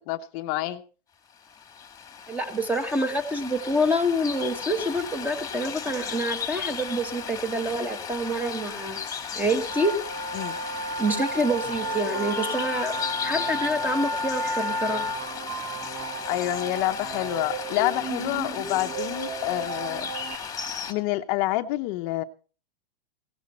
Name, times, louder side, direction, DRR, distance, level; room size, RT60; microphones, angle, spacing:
voice 1, 0.1-0.8 10.3-10.6 16.2-20.1 20.9-22.2, left 16 dB, 40° left, 8 dB, 0.8 m, -28 dB
sound 1, 1.4-20.9, left 7 dB, 10° left, 1.7 m, -36 dB
voice 2, 2.3-9.0 9.3-10.0 11.0-12.9 13.2-15.1, equal, 5° right, 10 dB, 1.3 m, -27 dB
sound 2, 9.6-15.2, left 1 dB, 60° right, 4.5 m, -31 dB
sound 3, 11.6-20.3, right 7 dB, 35° right, 1.6 m, -37 dB
17.5 x 13.5 x 4.3 m, 0.38 s
supercardioid pair, 150°, 29 cm